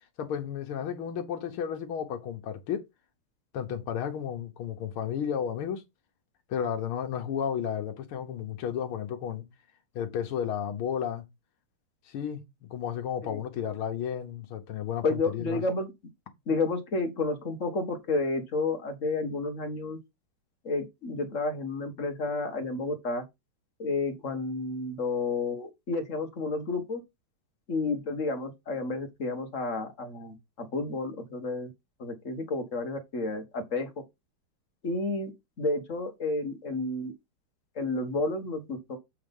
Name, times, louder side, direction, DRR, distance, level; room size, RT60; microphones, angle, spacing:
voice 1, 0.2-2.9 3.5-5.8 6.5-9.5 10.0-11.2 12.1-12.4 12.7-15.6, left 8 dB, 85° left, 2.0 m, -33 dB
voice 2, 15.0-15.9 16.5-20.0 20.6-23.2 23.8-27.0 27.7-31.7 32.0-33.9 34.8-35.3 35.6-37.1 37.8-39.0, left 3 dB, 40° left, 1.8 m, -31 dB
7.8 x 3.9 x 5.4 m
omnidirectional pair, 2.3 m